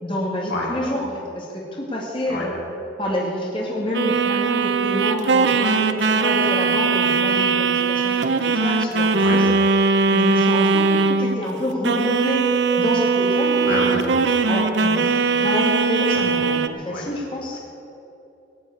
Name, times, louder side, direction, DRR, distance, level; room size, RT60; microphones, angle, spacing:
voice 1, 0.0-2.5 3.0-9.5 10.1-12.4 12.8-14.1 14.5-15.0 15.3-17.6, equal, 30° left, -3 dB, 2.3 m, -27 dB
sound 1, 3.9-11.5 11.8-16.7, right 4 dB, 75° right, 0.8 m, -20 dB
voice 2, 13.6-14.1 16.1-16.2 16.9-17.0, left 2 dB, 80° left, -3 dB, 4.6 m, -27 dB
17.5 x 8.1 x 9.6 m, 2.8 s
head